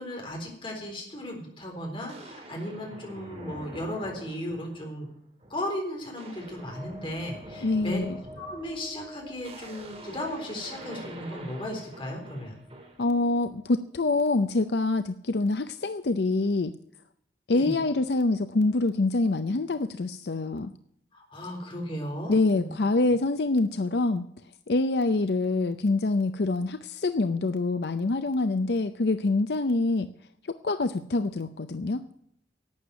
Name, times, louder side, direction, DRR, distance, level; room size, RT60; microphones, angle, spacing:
voice 1, 0.0-5.1 5.5-8.1 8.4-12.6 17.5-17.7 21.1-22.7, equal, 30° left, 1 dB, 4.0 m, -36 dB
Game-Over Fail Scratch, 1.2-1.4 2.1-5.0 5.4-5.7 6.0-13.1, right 1 dB, 35° right, 2.3 m, -45 dB
sound 1, 6.3-13.9, left 1 dB, ahead, 5.5 m, -51 dB
voice 2, 7.6-8.2 13.0-16.7 17.5-20.7 22.3-24.2 24.7-30.1 30.6-32.0, left 2 dB, 65° left, 10 dB, 0.6 m, -25 dB
12.0 x 8.8 x 9.3 m, 0.70 s
head